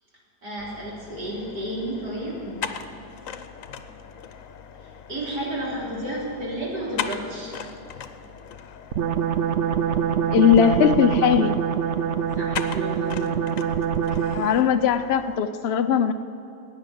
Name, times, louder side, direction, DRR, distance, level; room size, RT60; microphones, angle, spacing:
voice 1, 0.4-2.6 5.1-7.5 12.3-13.1, right 1 dB, 80° right, -6 dB, 4.2 m, -31 dB
sound 1, 0.6-15.4, left 7 dB, 60° left, 1.0 m, -39 dB
sound 2, 8.9-14.7, right 8 dB, 60° right, 0.7 m, -24 dB
voice 2, 10.3-11.6 14.3-16.1, left 8 dB, 80° left, 10 dB, 0.5 m, -19 dB
18.0 x 6.4 x 9.3 m, 2.7 s
omnidirectional pair, 1.8 m